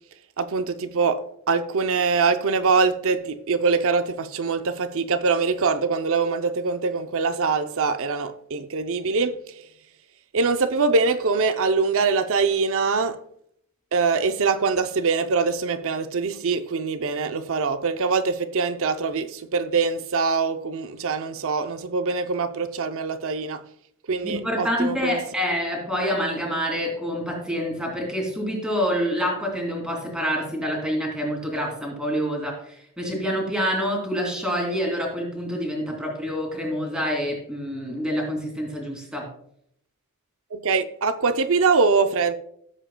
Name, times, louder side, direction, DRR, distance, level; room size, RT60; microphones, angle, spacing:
voice 1, 0.4-9.3 10.3-13.2 13.9-23.6 24.1-25.2 40.5-42.4, right 4 dB, 65° right, 0.6 m, -23 dB
voice 2, 24.2-39.3, equal, 5° right, 2.7 m, -27 dB
15.0 x 7.5 x 2.3 m
head